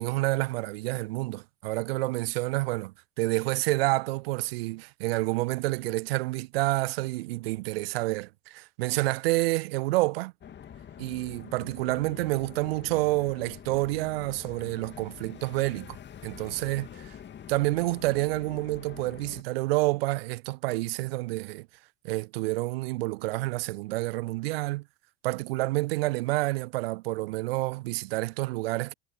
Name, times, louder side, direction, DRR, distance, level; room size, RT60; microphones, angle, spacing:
voice 1, 0.0-10.3 11.0-17.2 17.5-21.7 22.0-24.9 25.2-28.9, right 21 dB, 65° right, 0.5 m, -29 dB
sound 1, 10.4-19.4, left 9 dB, 35° left, 2.3 m, -46 dB
figure-of-eight pair, 65°, 31 cm